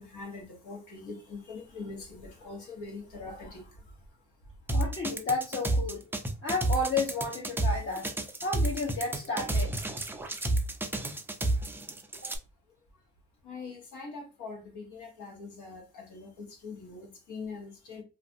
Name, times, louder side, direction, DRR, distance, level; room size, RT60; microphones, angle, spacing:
voice 1, 0.0-3.6 13.4-18.0, left 4 dB, 80° left, 1.1 m, -43 dB
voice 2, 4.7-6.0 6.4-8.1 8.4-9.7 12.2-12.3, left 3 dB, 45° left, 0.9 m, -31 dB
sound 1, 4.7-12.4, right 2 dB, 5° right, 0.3 m, -30 dB
2.5 x 2.3 x 2.5 m
cardioid pair, 90°, 30 cm